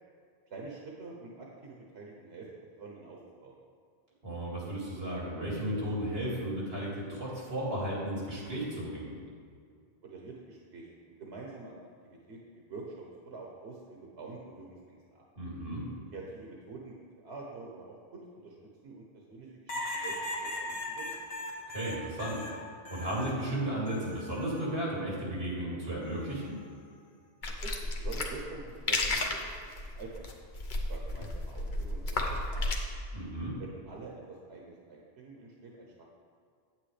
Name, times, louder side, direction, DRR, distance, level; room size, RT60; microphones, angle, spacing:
voice 1, 0.5-2.5 2.8-3.6 10.0-11.7 12.0-15.2 15.9-18.5 18.8-21.2 27.6-30.2 30.9-32.8 33.6-36.1, right 3 dB, 85° right, -2 dB, 1.2 m, -46 dB
voice 2, 4.2-9.1 15.4-15.8 21.7-22.4 22.9-26.5 33.1-33.5, right 1 dB, 70° right, -5 dB, 2.8 m, -34 dB
sound 1, 19.7-23.4 23.9-24.7 26.0-26.4, left 1 dB, 70° left, 1.3 m, -39 dB
sound 2, 27.4-32.8, left 2 dB, 50° left, 0.9 m, -33 dB
8.7 x 8.5 x 3.3 m, 2.2 s
omnidirectional pair, 1.1 m